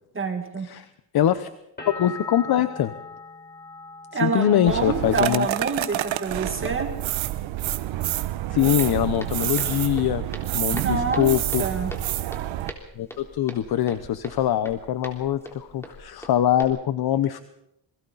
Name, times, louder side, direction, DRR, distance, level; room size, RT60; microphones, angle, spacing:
voice 1, 0.1-0.7 4.1-6.9 10.7-11.3 11.6-11.9, right 4 dB, 25° right, 5 dB, 2.1 m, -27 dB
voice 2, 1.1-1.5 1.9-2.9 4.2-5.5 8.5-10.2 10.5-11.6 13.0-17.4, left 11 dB, 55° left, 12 dB, 0.9 m, -23 dB
sound 1, 1.8-7.4 7.7-8.5, left 3 dB, 20° left, 4.9 m, -42 dB
sound 2, 4.7-12.7, right 14 dB, 75° right, 1.1 m, -28 dB
Walk footsteps, 8.8-16.6, equal, 5° left, 3.6 m, -42 dB
27.5 x 23.0 x 4.1 m, 0.82 s
cardioid pair, 125°, 46 cm